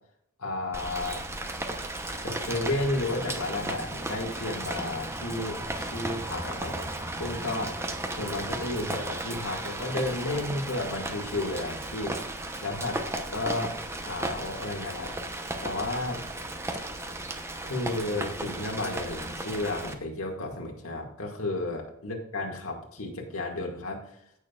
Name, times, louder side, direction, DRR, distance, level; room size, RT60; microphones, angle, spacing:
voice 1, 0.4-1.2 2.2-6.9 7.2-7.7 8.2-12.2 12.6-15.1 15.6-16.2 17.6-24.1, left 2 dB, 85° left, 0 dB, 2.1 m, -32 dB
Rain, 0.7-19.9, right 1 dB, 10° right, 0.9 m, -35 dB
15.5 x 6.6 x 2.4 m, 0.74 s
head